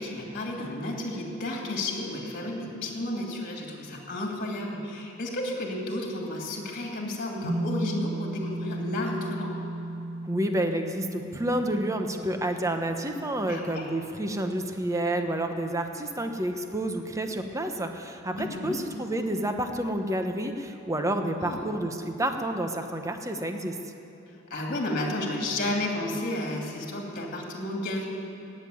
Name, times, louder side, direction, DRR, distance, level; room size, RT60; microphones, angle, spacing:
voice 1, 0.0-9.5 13.5-13.9 18.4-18.8 21.3-21.8 24.5-28.1, left 1 dB, 45° left, 0 dB, 2.7 m, -32 dB
sound 1, 7.4-15.9, right 1 dB, 70° right, 4.6 m, -36 dB
voice 2, 10.2-23.8, right 1 dB, 15° right, 5 dB, 1.0 m, -29 dB
17.0 x 7.5 x 9.6 m, 3.0 s
head